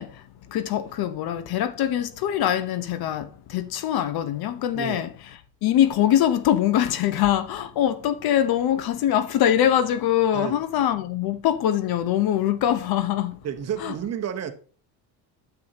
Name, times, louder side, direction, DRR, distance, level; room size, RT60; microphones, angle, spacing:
voice 1, 0.0-5.1 5.6-13.4 13.8-13.9, left 11 dB, 55° left, 0.8 m, -23 dB
voice 2, 4.7-5.1 10.3-10.6 13.4-14.5, right 9 dB, 35° right, 1.0 m, -30 dB
9.5 x 7.1 x 2.9 m
cardioid pair, 130°, 44 cm